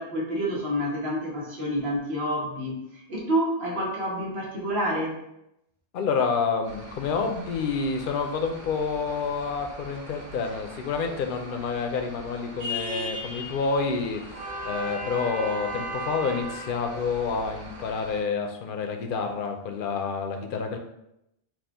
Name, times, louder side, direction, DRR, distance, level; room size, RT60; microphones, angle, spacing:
voice 1, 0.0-5.2, equal, 80° right, -3 dB, 1.3 m, -28 dB
voice 2, 5.9-14.2 14.6-20.8, left 5 dB, 65° left, 4 dB, 0.7 m, -28 dB
sound 1, 6.6-18.2, equal, 65° right, 1.4 m, -38 dB
4.3 x 2.4 x 3.4 m, 0.82 s
omnidirectional pair, 1.0 m